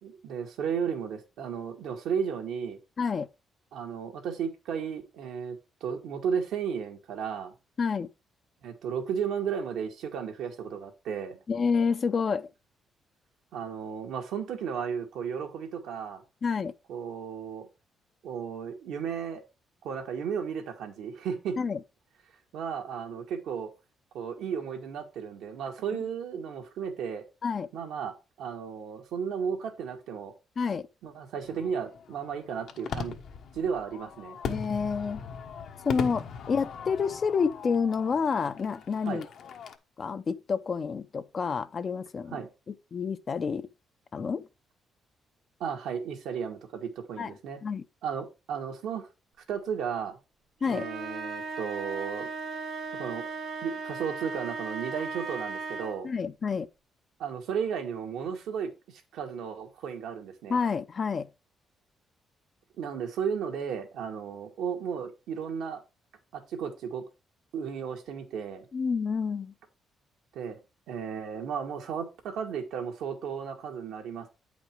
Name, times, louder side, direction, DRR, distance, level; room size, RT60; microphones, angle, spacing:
voice 1, 0.0-2.8 3.7-7.5 8.6-11.4 13.5-16.2 16.9-17.7 18.2-19.4 19.8-21.6 22.5-23.7 24.1-27.3 27.7-30.3 31.0-33.1 33.5-34.4 39.1-39.2 42.3-42.5 45.6-47.6 48.0-49.1 49.5-50.2 50.7-52.3 52.9-53.3 53.6-56.1 57.2-60.6 62.8-65.8 66.3-67.0 67.5-68.6 70.3-70.6 70.9-74.3, right 7 dB, 80° right, 1.9 m, -34 dB
voice 2, 7.8-8.1 11.5-12.5 16.4-16.7 21.6-21.8 25.9-26.0 27.4-27.7 30.6-30.9 34.5-35.2 35.8-39.3 40.0-42.4 42.7-43.7 44.1-44.5 47.2-47.3 47.6-47.8 50.6-50.9 56.0-56.7 60.5-61.3 68.7-69.5, left 5 dB, 45° left, 0.6 m, -29 dB
Fireworks, 31.4-39.8, left 6 dB, 70° left, 1.1 m, -39 dB
sound 1, 50.6-56.1, right 4 dB, 65° right, 1.5 m, -37 dB
8.7 x 5.2 x 4.6 m
cardioid pair, 90°, 0 cm